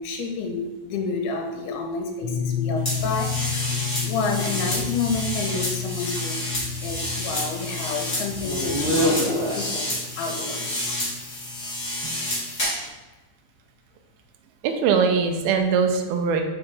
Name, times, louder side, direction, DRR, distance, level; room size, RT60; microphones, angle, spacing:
voice 1, 0.0-3.7 4.0-9.9 10.2-11.0, left 4 dB, 75° left, 1 dB, 2.6 m, -30 dB
sound 1, 2.2-11.8, left 7 dB, 60° left, 1.7 m, -32 dB
sound 2, 2.8-12.9, left 1 dB, 45° left, 0.8 m, -28 dB
sound 3, 2.9-4.1 4.7-5.9 6.5-7.6 8.3-9.4, right 2 dB, 65° right, 2.5 m, -42 dB
voice 2, 14.6-16.4, right 6 dB, 85° right, 4 dB, 2.1 m, -21 dB
5.8 x 5.3 x 3.4 m, 1.1 s
omnidirectional pair, 4.9 m